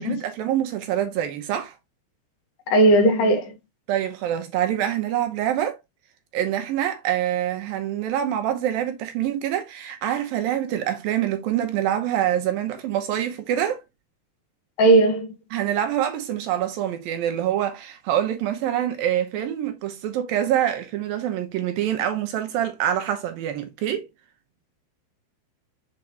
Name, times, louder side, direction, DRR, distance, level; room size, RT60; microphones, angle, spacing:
voice 1, 0.0-1.8 3.9-5.8 6.3-13.8 15.5-24.1, right 11 dB, 75° right, 2.5 m, -25 dB
voice 2, 2.7-3.5 14.8-15.3, right 2 dB, 65° left, 3.1 m, -17 dB
7.3 x 4.5 x 2.9 m
omnidirectional pair, 4.5 m